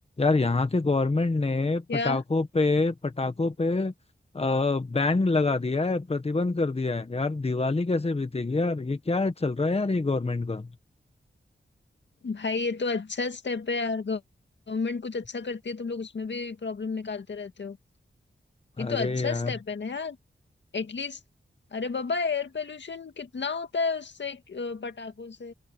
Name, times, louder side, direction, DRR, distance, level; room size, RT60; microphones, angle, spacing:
voice 1, 0.2-3.9 4.3-10.7 18.8-19.5, left 3 dB, 30° left, 1.4 m, -26 dB
voice 2, 1.9-2.2 12.2-14.2 14.7-17.8 18.8-20.2 20.7-21.2 21.7-25.5, left 4 dB, 70° left, 2.0 m, -31 dB
wide cardioid pair, 85°, 19 cm